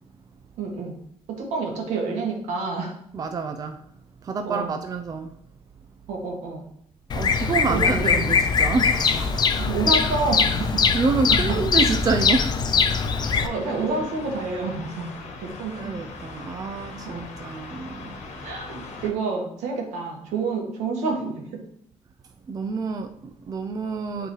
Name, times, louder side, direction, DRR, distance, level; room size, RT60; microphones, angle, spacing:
voice 1, 0.6-1.0 1.3-3.0 4.4-4.7 6.1-6.6 7.7-8.3 9.5-10.9 13.4-15.0 15.4-15.7 17.1-17.3 18.4-21.6, right 4 dB, 85° right, 0 dB, 1.7 m, -28 dB
voice 2, 3.1-3.8 4.2-5.3 7.1-9.7 10.9-12.8 15.8-18.2 22.5-24.3, right 4 dB, 30° right, 6 dB, 0.5 m, -28 dB
Bird vocalization bird call bird song, 7.1-13.5, left 5 dB, 35° left, 0.5 m, -22 dB
sound 1, 13.0-19.1, left 3 dB, 75° left, 1.3 m, -40 dB
7.8 x 3.9 x 3.2 m, 0.68 s
cardioid pair, 120°, 12 cm